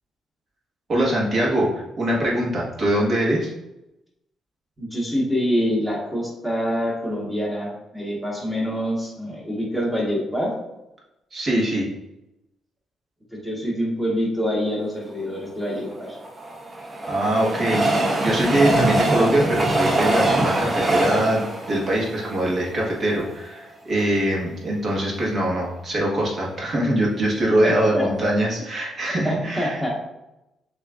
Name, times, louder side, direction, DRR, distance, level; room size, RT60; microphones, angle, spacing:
voice 1, 0.9-3.5 11.3-11.9 17.1-29.9, right 1 dB, 45° right, -3 dB, 1.4 m, -23 dB
voice 2, 4.8-10.5 13.3-16.2 27.6-28.1 29.2-29.9, equal, 10° right, -4 dB, 1.3 m, -25 dB
Train, 15.9-23.2 23.7-23.8 24.0-24.1, right 1 dB, 30° right, 0.7 m, -23 dB
6.2 x 2.7 x 2.4 m, 0.92 s
cardioid pair, 90°, 0 cm